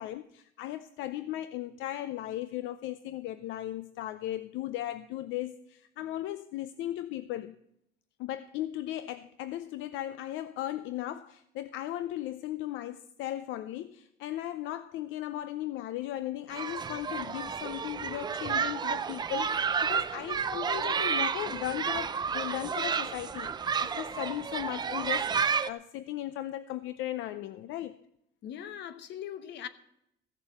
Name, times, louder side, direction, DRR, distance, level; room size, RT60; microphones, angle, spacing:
voice 1, 0.0-7.6 8.2-28.0, left 13 dB, 80° left, 0.6 m, -37 dB
sound 1, 16.5-25.7, right 6 dB, 20° right, 0.5 m, -31 dB
voice 2, 28.4-29.7, left 10 dB, 60° left, 1.1 m, -40 dB
15.0 x 7.2 x 7.6 m
cardioid pair, 155°, 20 cm